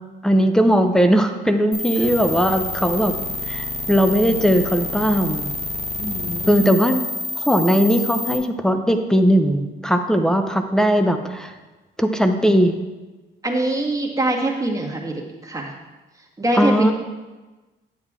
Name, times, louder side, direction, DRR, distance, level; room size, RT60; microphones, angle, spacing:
voice 1, 0.2-3.1 3.5-5.5 6.5-7.0 7.4-11.5 12.0-12.7 16.5-16.9, equal, 5° left, 7 dB, 0.8 m, -18 dB
sound 1, 1.7-8.4, left 2 dB, 30° left, 1.5 m, -28 dB
voice 2, 6.0-6.6 13.4-15.7 16.4-16.9, right 1 dB, 15° right, -1 dB, 1.8 m, -24 dB
9.6 x 8.0 x 3.7 m, 1.2 s
cardioid pair, 90°, 20 cm